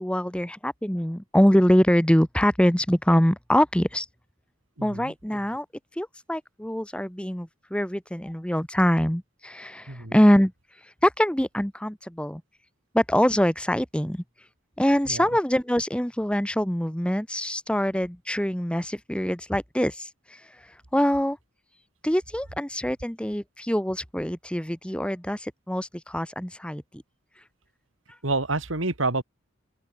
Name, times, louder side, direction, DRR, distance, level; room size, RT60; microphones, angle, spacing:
voice 1, 0.0-4.1 4.8-5.6 6.0-10.5 11.0-12.4 12.9-14.2 14.8-20.4 20.9-21.4 22.0-27.0, equal, 5° left, 1.3 m, -24 dB
voice 2, 4.8-5.1 9.9-10.1 15.1-15.2 28.2-29.2, right 3 dB, 75° right, 2.7 m, -28 dB
open air
head